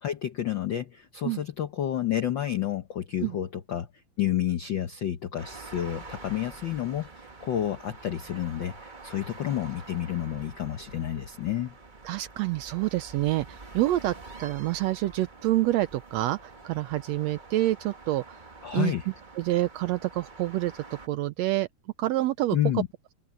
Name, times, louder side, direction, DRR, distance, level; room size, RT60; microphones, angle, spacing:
voice 1, 0.0-11.8 18.6-19.0 22.5-22.9, left 11 dB, 70° left, 1.1 m, -30 dB
sound 1, 5.4-21.1, right 3 dB, 35° right, 0.7 m, -47 dB
voice 2, 12.1-14.1 14.4-18.4 18.7-18.9 19.4-20.7 21.1-21.7 22.0-22.8, right 15 dB, 75° right, 1.7 m, -27 dB
omnidirectional pair, 3.3 m